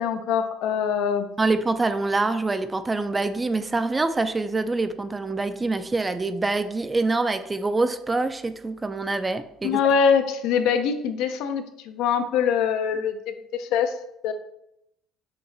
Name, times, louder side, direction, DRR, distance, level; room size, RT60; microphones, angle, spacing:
voice 1, 0.0-1.3 9.6-14.0 14.2-14.3, left 7 dB, 75° left, 8 dB, 0.5 m, -23 dB
voice 2, 1.4-9.8, right 3 dB, 15° right, 11 dB, 0.3 m, -25 dB
6.5 x 2.9 x 2.7 m, 0.80 s
cardioid pair, 125°, 0 cm